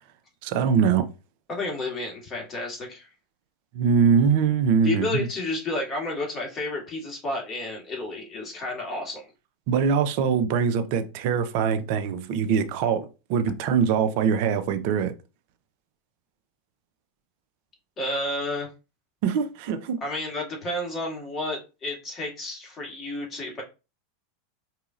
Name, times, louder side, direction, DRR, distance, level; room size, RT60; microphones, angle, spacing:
voice 1, 0.4-1.1 3.7-5.3 9.7-15.1 19.2-20.0, right 6 dB, 60° right, 0.6 m, -23 dB
voice 2, 1.5-3.1 4.8-9.3 18.0-18.7 20.0-23.6, left 2 dB, 30° left, 2.1 m, -31 dB
4.9 x 2.8 x 2.5 m
hypercardioid pair, 95°, 0 cm